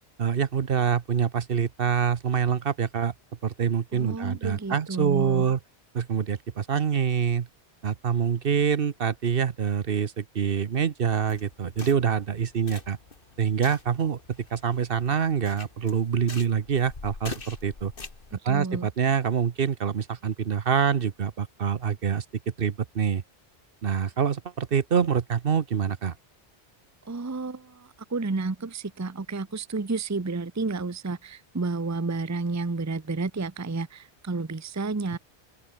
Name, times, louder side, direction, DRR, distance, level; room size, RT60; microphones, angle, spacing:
voice 1, 0.2-3.1 3.4-5.6 5.9-7.5 7.8-13.0 13.4-14.2 14.5-17.9 18.4-22.2 22.6-23.2 23.8-26.1, right 7 dB, 55° right, 1.1 m, -25 dB
voice 2, 3.9-5.5 18.3-18.9 27.1-35.2, right 3 dB, 15° right, 0.7 m, -31 dB
sound 1, 11.0-18.4, left 3 dB, 50° left, 2.3 m, -44 dB
open air
omnidirectional pair, 1.1 m